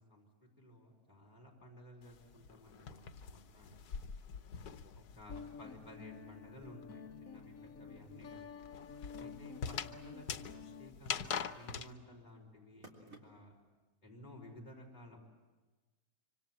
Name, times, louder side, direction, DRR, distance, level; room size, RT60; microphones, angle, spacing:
voice 1, 0.0-4.0 4.9-8.5 9.2-13.5 14.0-15.2, left 1 dB, 25° left, -1 dB, 5.1 m, -55 dB
sound 1, 0.8-13.7, right 2 dB, 60° right, 3.9 m, -68 dB
sound 2, 2.0-5.8 6.0-11.9, left 6 dB, 90° left, 1.5 m, -44 dB
Guitar, 5.3-10.9, left 5 dB, 65° left, 1.7 m, -50 dB
26.0 x 25.5 x 7.7 m, 1.2 s
omnidirectional pair, 1.6 m